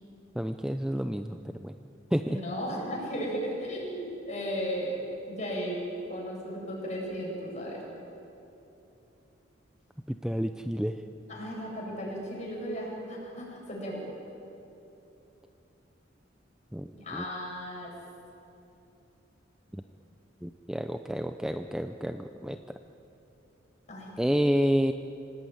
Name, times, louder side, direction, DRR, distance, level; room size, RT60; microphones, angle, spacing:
voice 1, 0.3-1.7 2.1-2.4 10.1-11.0 16.7-17.3 19.7-19.8 20.4-22.6 24.2-24.9, equal, 5° right, 7 dB, 0.5 m, -29 dB
voice 2, 2.2-5.0 5.3-5.8 6.1-7.8 11.3-14.0 16.9-17.9 23.9-24.1, equal, 40° left, -2 dB, 7.8 m, -35 dB
27.0 x 18.0 x 9.6 m, 2.9 s
head